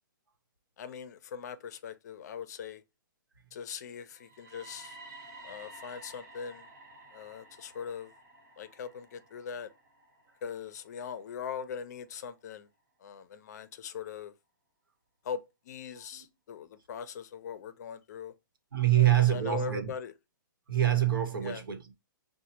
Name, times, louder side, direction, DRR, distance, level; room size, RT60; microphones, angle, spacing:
voice 1, 0.8-2.8 3.5-5.0 5.4-6.7 7.1-8.1 8.6-9.7 10.4-12.7 13.0-14.3 15.2-18.3 19.0-20.1 21.4-21.6, left 7 dB, 55° left, 0.5 m, -41 dB
sound 1, 4.1-12.0, right 2 dB, 50° right, 1.0 m, -52 dB
voice 2, 18.7-19.9 20.7-22.1, right 12 dB, 90° right, 1.0 m, -26 dB
4.0 x 2.1 x 2.8 m
hypercardioid pair, 150°, 11 cm